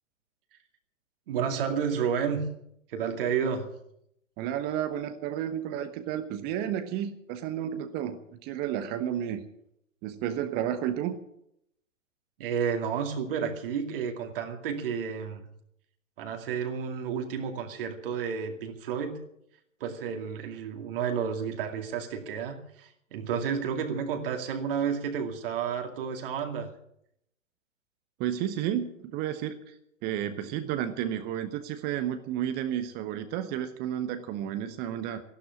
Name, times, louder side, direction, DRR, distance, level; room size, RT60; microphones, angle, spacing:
voice 1, 1.3-2.5 2.9-3.7 12.4-15.4 16.2-19.2 19.8-26.7, right 7 dB, 45° right, 5 dB, 2.4 m, -31 dB
voice 2, 4.4-9.4 10.0-11.1 28.2-29.7 30.0-35.2, right 10 dB, 25° right, 10 dB, 1.1 m, -32 dB
14.0 x 12.0 x 8.4 m, 0.75 s
figure-of-eight pair, 115°, 38 cm